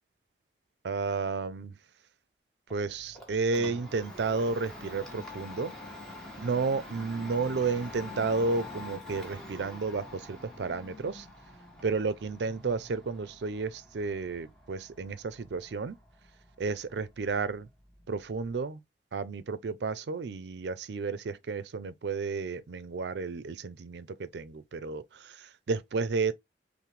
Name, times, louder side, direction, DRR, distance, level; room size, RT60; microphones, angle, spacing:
voice 1, 0.8-1.8 2.7-5.7 6.4-11.3 11.8-16.0 16.6-17.7 18.1-18.8 19.1-26.3, right 4 dB, 75° right, 0.4 m, -32 dB
Domestic sounds home sounds, 2.7-18.5, left 2 dB, 5° left, 1.0 m, -46 dB
5.7 x 2.1 x 3.1 m
head